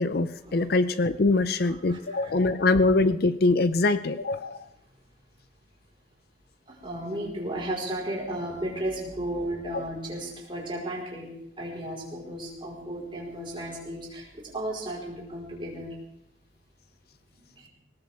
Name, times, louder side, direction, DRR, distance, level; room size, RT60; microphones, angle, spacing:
voice 1, 0.0-4.7, left 3 dB, 55° left, 13 dB, 0.5 m, -23 dB
voice 2, 1.6-2.3 6.7-11.3 11.6-15.9 17.6-17.7, right 1 dB, 25° right, -3 dB, 4.8 m, -34 dB
21.0 x 18.5 x 3.7 m, 0.81 s
head